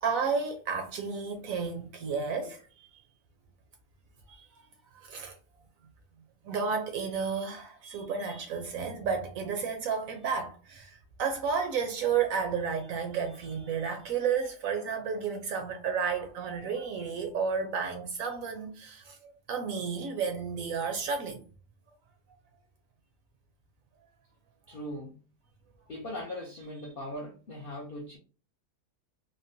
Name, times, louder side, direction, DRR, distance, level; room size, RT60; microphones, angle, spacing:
voice 1, 0.0-3.0 4.3-4.5 4.9-5.4 6.4-21.4, right 6 dB, 70° right, 0.9 m, -32 dB
voice 2, 24.7-25.3 25.9-28.2, left 1 dB, 65° left, 0.5 m, -39 dB
3.6 x 2.1 x 2.6 m
omnidirectional pair, 1.7 m